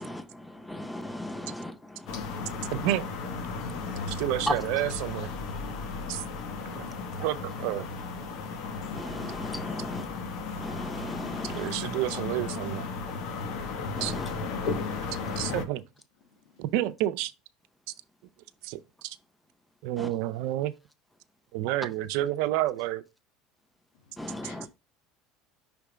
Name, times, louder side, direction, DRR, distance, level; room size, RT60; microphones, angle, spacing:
voice 1, 0.0-3.0 8.9-10.2 10.6-11.8 14.0-14.3 20.0-20.2 24.2-24.7, left 1 dB, 5° left, 0.6 m, -37 dB
sound 1, 2.1-15.6, left 4 dB, 60° left, 1.0 m, -35 dB
voice 2, 2.7-3.2 4.1-5.3 6.1-6.2 6.7-6.9 7.2-7.9 11.5-12.8 14.0-14.1 15.4-15.8 16.6-17.3 18.6-19.2 19.8-20.7 21.5-23.0, right 14 dB, 70° right, 0.5 m, -29 dB
voice 3, 16.2-16.7 23.9-24.7, left 5 dB, 85° left, 1.7 m, -60 dB
5.7 x 3.4 x 4.9 m
supercardioid pair, 120°, 0 cm